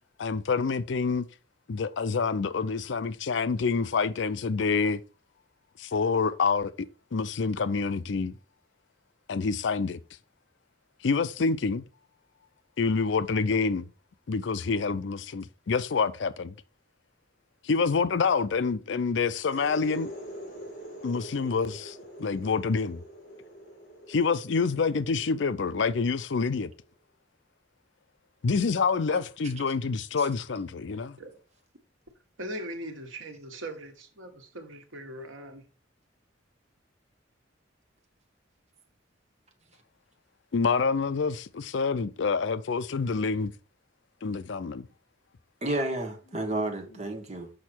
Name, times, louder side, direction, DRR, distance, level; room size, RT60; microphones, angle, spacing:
voice 1, 0.2-1.3 1.7-5.0 5.8-8.3 9.3-10.0 11.0-11.8 12.8-13.9 14.3-16.5 17.6-20.1 21.0-23.0 24.1-26.7 28.4-31.2 40.5-43.5 44.2-44.9, left 4 dB, 65° left, 0.5 m, -27 dB
sound 1, 19.3-26.9, equal, 40° left, 3.9 m, -45 dB
voice 2, 32.4-35.6, right 1 dB, 85° right, 1.5 m, -40 dB
voice 3, 45.6-47.5, right 1 dB, 35° right, 1.3 m, -31 dB
6.4 x 5.6 x 4.4 m
head